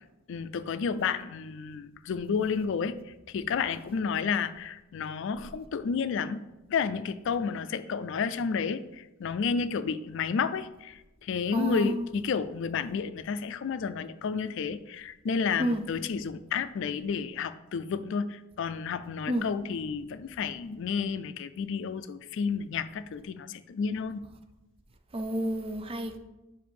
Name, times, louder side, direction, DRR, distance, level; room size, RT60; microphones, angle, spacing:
voice 1, 0.3-3.0 3.3-6.4 6.7-24.2, left 6 dB, 65° left, 0.4 m, -31 dB
voice 2, 11.5-12.1 15.6-15.8 19.3-19.5 25.1-26.2, equal, 30° right, 0.5 m, -30 dB
7.5 x 2.6 x 5.3 m
head